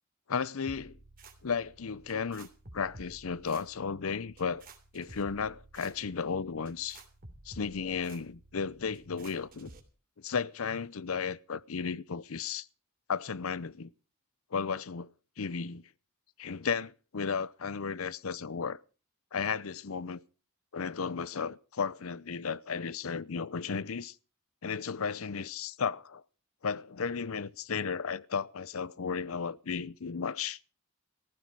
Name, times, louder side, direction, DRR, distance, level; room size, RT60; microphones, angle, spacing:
voice 1, 0.3-1.0 1.4-2.5 2.7-4.6 4.9-7.0 7.5-9.7 10.2-12.7 13.1-13.9 14.5-15.1 15.4-15.8 16.4-18.8 19.3-20.2 20.7-24.1 24.6-26.2 26.6-30.6, left 5 dB, 75° left, 0.7 m, -34 dB
sound 1, 0.7-9.8, right 2 dB, 40° right, 2.9 m, -53 dB
15.5 x 14.5 x 4.7 m
head